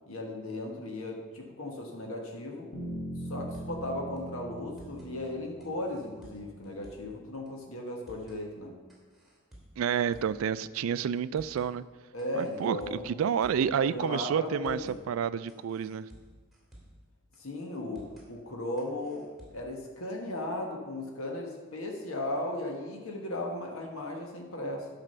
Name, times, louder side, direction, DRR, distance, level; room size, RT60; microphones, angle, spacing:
voice 1, 0.1-2.7 3.3-8.8 12.1-13.1 13.8-15.0 17.4-19.2 19.5-24.9, left 1 dB, 90° left, 1 dB, 1.4 m, -36 dB
sound 1, 2.7-6.7, equal, 40° left, 1.7 m, -41 dB
sound 2, 3.3-3.9 4.2-4.3 4.6-5.1 5.6-7.2 7.5-7.6 7.9-8.4 8.9-10.5 10.7-10.8 11.2-11.7 12.2-13.8 14.0-14.1 14.5-15.0 15.5-17.1 17.3-17.4 17.7-18.3 18.8-19.7, right 1 dB, ahead, 2.6 m, -54 dB
voice 2, 9.8-11.8 12.3-14.8 15.1-16.1, right 8 dB, 75° right, 15 dB, 0.3 m, -29 dB
11.0 x 4.9 x 6.7 m, 1.4 s
head